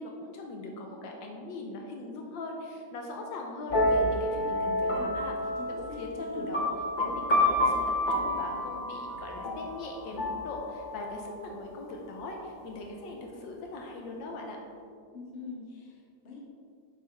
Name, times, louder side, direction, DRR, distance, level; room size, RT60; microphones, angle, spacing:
voice 1, 0.0-5.3 5.8-6.6 7.0-14.6, left 2 dB, 80° left, 1 dB, 1.4 m, -40 dB
sound 1, 3.7-11.3, left 1 dB, 60° left, 0.4 m, -29 dB
voice 2, 5.6-6.5 15.1-16.4, left 3 dB, 45° left, -2 dB, 1.3 m, -44 dB
6.5 x 5.3 x 3.3 m, 2.4 s
omnidirectional pair, 2.1 m